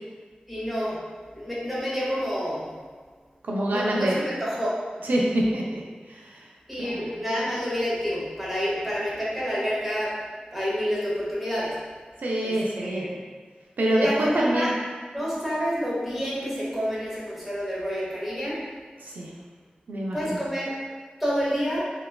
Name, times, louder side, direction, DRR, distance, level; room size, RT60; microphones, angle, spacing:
voice 1, 0.5-1.0 1.3-2.7 3.7-4.8 6.7-10.1 10.5-11.8 12.4-13.1 14.0-14.7 15.1-18.6 20.1-20.7 21.2-21.8, equal, 5° right, -8 dB, 0.9 m, -28 dB
voice 2, 3.4-4.2 5.0-5.8 6.1-6.5 6.8-7.1 12.2-13.1 13.8-14.7 19.0-19.3 19.9-20.4, right 1 dB, 85° right, -3 dB, 0.4 m, -25 dB
2.9 x 2.3 x 2.2 m, 1.5 s
wide cardioid pair, 80°, 3 cm